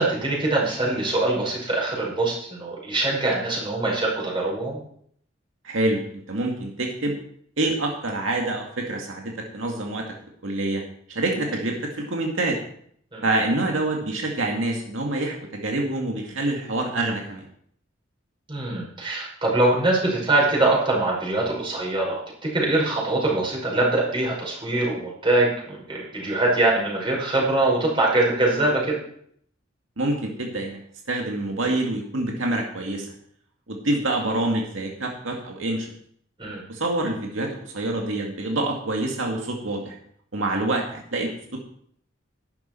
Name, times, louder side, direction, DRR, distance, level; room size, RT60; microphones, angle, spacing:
voice 1, 0.0-4.8 13.1-13.3 18.5-29.0 36.4-36.6, right 2 dB, 25° right, -3 dB, 5.3 m, -23 dB
voice 2, 5.6-6.0 6.3-7.2 7.6-10.0 10.4-10.8 11.1-12.6 13.2-17.4 30.0-30.8 31.1-33.1 33.7-35.9 36.7-40.0 40.3-41.6, right 2 dB, 85° right, 0 dB, 2.1 m, -26 dB
12.0 x 11.0 x 4.5 m, 0.64 s
head